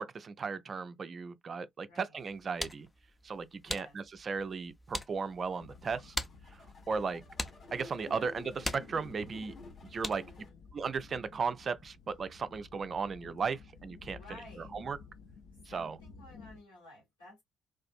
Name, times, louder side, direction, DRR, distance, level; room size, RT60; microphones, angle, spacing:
voice 1, 0.0-2.9 3.2-6.1 6.9-7.2 7.7-9.5 9.9-10.2 10.7-14.2 14.7-15.0 15.7-16.0, right 5 dB, 40° right, 0.3 m, -36 dB
voice 2, 1.8-2.2 3.6-4.0 8.0-8.3 10.1-10.6 14.1-14.7 15.7-17.4, left 2 dB, 80° left, 1.4 m, -54 dB
sound 1, 2.2-10.5, left 1 dB, 15° left, 0.5 m, -43 dB
sound 2, 5.2-10.5, left 2 dB, 45° left, 0.9 m, -52 dB
sound 3, 5.6-16.6, left 4 dB, 65° left, 0.5 m, -54 dB
2.5 x 2.3 x 2.5 m
figure-of-eight pair, 45°, 0 cm